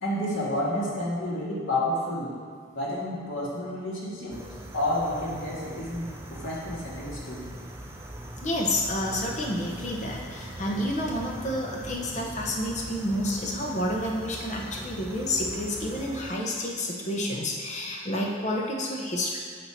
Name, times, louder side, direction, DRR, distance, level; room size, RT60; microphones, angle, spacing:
voice 1, 0.0-2.3 2.7-4.4 4.7-7.4, left 1 dB, 80° left, -6 dB, 1.8 m, -30 dB
sound 1, 4.3-16.3, right 1 dB, 15° right, 0.4 m, -41 dB
voice 2, 8.4-19.4, left 1 dB, 35° left, -1 dB, 0.8 m, -29 dB
8.2 x 2.8 x 5.7 m, 2.1 s
head